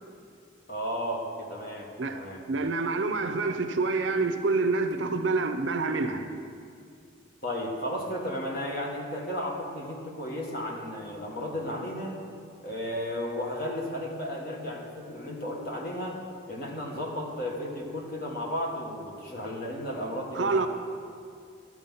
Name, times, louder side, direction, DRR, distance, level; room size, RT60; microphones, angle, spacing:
voice 1, 0.7-2.4 7.4-12.2 12.6-16.2 16.5-20.7, equal, 50° left, 1.5 m, -34 dB
voice 2, 2.5-6.3 20.3-20.7, right 3 dB, 70° right, 0.6 m, -27 dB
13.0 x 4.7 x 5.5 m
head